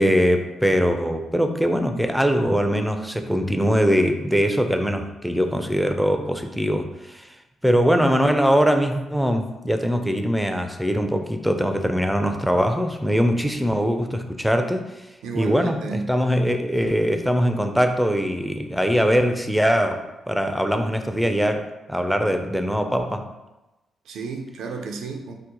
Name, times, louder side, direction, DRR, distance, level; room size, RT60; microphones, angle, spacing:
voice 1, 0.0-7.3 7.6-14.9 15.3-23.3, equal, ahead, 6 dB, 0.4 m, -22 dB
voice 2, 15.2-16.1 24.1-25.3, right 4 dB, 70° right, 3 dB, 0.4 m, -32 dB
2.8 x 2.1 x 3.7 m, 1.0 s
hypercardioid pair, 40°, 0 cm